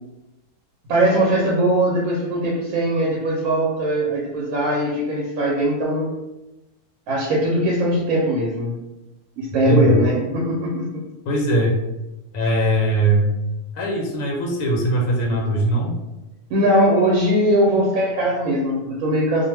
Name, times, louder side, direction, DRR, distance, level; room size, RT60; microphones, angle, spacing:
voice 1, 0.9-6.2 7.1-8.7 9.4-11.0 16.5-19.5, right 1 dB, 90° right, -3 dB, 1.0 m, -20 dB
voice 2, 11.3-11.8 12.3-13.3 13.7-16.0, right 1 dB, 85° left, 0 dB, 1.0 m, -20 dB
2.4 x 2.1 x 3.2 m, 0.97 s
omnidirectional pair, 1.4 m